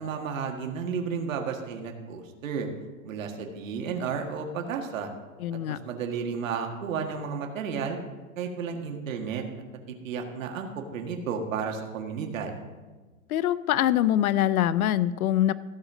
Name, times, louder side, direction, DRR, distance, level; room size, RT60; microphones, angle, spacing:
voice 1, 0.0-2.7 3.0-5.1 5.7-8.0 8.4-9.4 9.9-12.6, right 6 dB, 65° right, 3 dB, 1.8 m, -32 dB
voice 2, 5.4-5.8 13.3-15.5, left 12 dB, 85° left, 17 dB, 0.6 m, -24 dB
15.5 x 5.2 x 6.2 m, 1.3 s
supercardioid pair, 175°, 42 cm